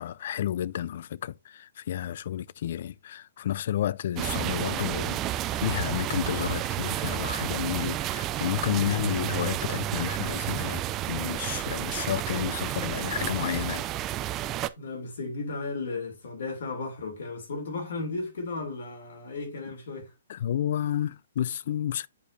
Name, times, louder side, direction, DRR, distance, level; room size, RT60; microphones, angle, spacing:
voice 1, 0.0-13.9 20.3-22.1, left 11 dB, 55° left, 0.3 m, -31 dB
sound 1, 4.2-14.7, right 13 dB, 20° right, 0.4 m, -31 dB
voice 2, 14.8-20.1, left 3 dB, 70° left, 3.1 m, -35 dB
8.4 x 5.0 x 2.7 m
hypercardioid pair, 155°, 0 cm